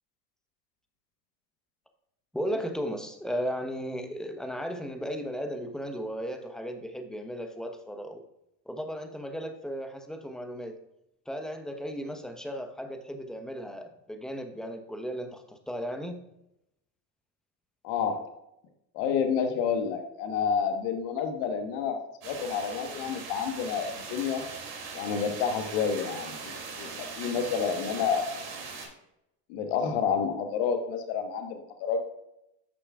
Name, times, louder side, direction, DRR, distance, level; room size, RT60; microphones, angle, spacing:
voice 1, 2.3-8.2 8.7-10.7 11.3-16.2, equal, ahead, 5 dB, 1.0 m, -35 dB
voice 2, 17.8-18.3 18.9-22.0 22.2-24.4 24.9-28.3 29.5-32.0, left 6 dB, 65° left, 6 dB, 1.4 m, -29 dB
sound 1, 22.2-28.9, right 4 dB, 70° right, 2.8 m, -40 dB
10.5 x 6.7 x 2.4 m, 0.83 s
hypercardioid pair, 80°, 49 cm